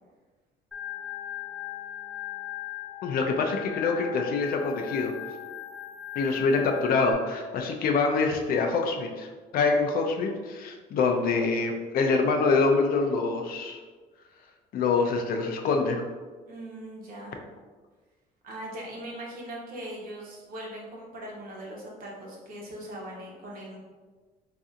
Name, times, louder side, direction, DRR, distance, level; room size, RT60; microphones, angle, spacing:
Organ, 0.7-7.1, left 12 dB, 5° left, 1.0 m, -38 dB
voice 1, 3.0-5.1 6.2-9.3 9.5-13.8 14.7-16.0, left 4 dB, 60° left, 3 dB, 0.5 m, -25 dB
voice 2, 16.4-17.3 18.4-23.8, right 1 dB, 55° right, -3 dB, 1.0 m, -40 dB
4.0 x 2.7 x 2.4 m, 1.4 s
cardioid pair, 110°, 17 cm